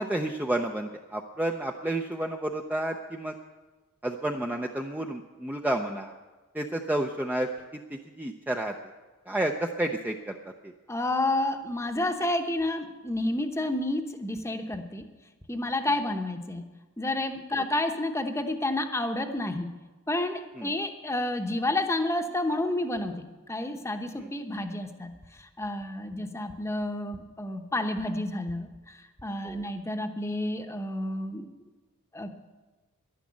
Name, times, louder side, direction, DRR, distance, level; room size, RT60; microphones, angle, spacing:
voice 1, 0.0-3.4 4.0-6.1 6.5-7.5 7.9-8.8 9.3-10.4 10.6-10.7 20.6-20.8 24.2-24.3 29.4-29.7, right 1 dB, 10° right, 3 dB, 0.5 m, -30 dB
voice 2, 10.9-15.1 15.5-16.6 17.0-19.7 20.1-31.5 32.1-32.3, left 1 dB, 10° left, 6 dB, 0.9 m, -30 dB
11.5 x 10.0 x 8.6 m, 1.3 s
head